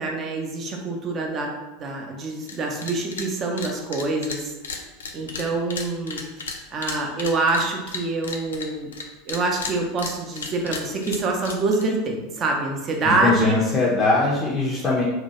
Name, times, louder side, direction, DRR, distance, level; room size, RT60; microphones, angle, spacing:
voice 1, 0.0-4.5 5.1-6.2 6.7-8.9 9.3-13.6, right 3 dB, 35° right, 1 dB, 0.5 m, -25 dB
sound 1, 2.4-2.6 2.8-3.3 3.6-9.0 9.3-11.9, left 4 dB, 70° left, 0.3 m, -33 dB
voice 2, 13.2-15.0, left 3 dB, 20° left, -5 dB, 0.5 m, -21 dB
2.8 x 2.2 x 2.8 m, 1.1 s
figure-of-eight pair, 80°, 0 cm